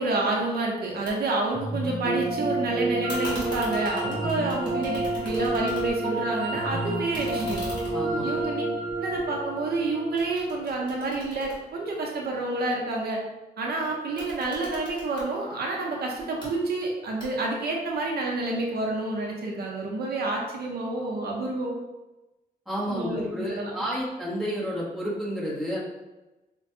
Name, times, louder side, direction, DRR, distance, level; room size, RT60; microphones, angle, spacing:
voice 1, 0.0-7.6 8.2-8.6 9.0-13.2 13.6-21.8 22.9-23.7, right 2 dB, 80° right, -1 dB, 0.7 m, -29 dB
sound 1, 1.1-1.2 1.4-2.3 3.1-6.1 6.5-9.7 10.2-12.4 14.0-15.3 16.2-16.5 17.2-17.7, equal, 30° left, 1.4 m, -42 dB
sound 2, 1.5-10.7, right 2 dB, 40° right, 0.8 m, -29 dB
voice 2, 7.9-8.3 22.7-25.8, equal, ahead, -8 dB, 1.0 m, -30 dB
5.0 x 2.2 x 2.7 m, 1.0 s
wide cardioid pair, 155°, 16 cm